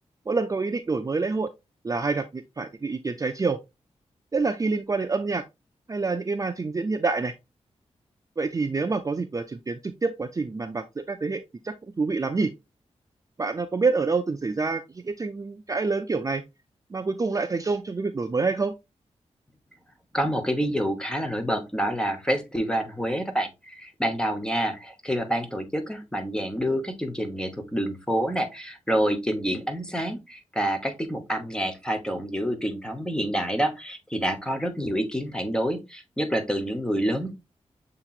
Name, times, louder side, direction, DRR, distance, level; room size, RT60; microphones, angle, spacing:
voice 1, 0.3-1.5 1.8-3.6 4.3-5.4 5.9-7.3 8.4-12.5 13.4-16.4 16.9-18.7, right 4 dB, 30° right, 7 dB, 0.4 m, -27 dB
voice 2, 20.1-37.3, equal, 5° left, 6 dB, 1.0 m, -27 dB
6.7 x 2.9 x 2.4 m, 0.23 s
cardioid pair, 65°, 12 cm